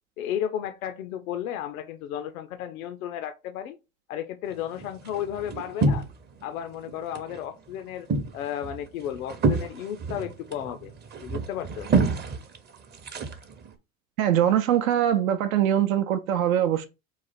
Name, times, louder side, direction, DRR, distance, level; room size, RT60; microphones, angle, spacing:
voice 1, 0.2-3.8 4.1-6.1 6.4-8.1 8.3-10.9 11.2-11.9, left 10 dB, 75° left, 0.5 m, -33 dB
sound 1, 4.5-6.4 6.7-7.4 7.7-13.7, right 3 dB, 25° right, 0.6 m, -28 dB
voice 2, 14.2-16.9, right 10 dB, 70° right, 0.6 m, -22 dB
4.1 x 2.4 x 4.1 m
hypercardioid pair, 75°, 42 cm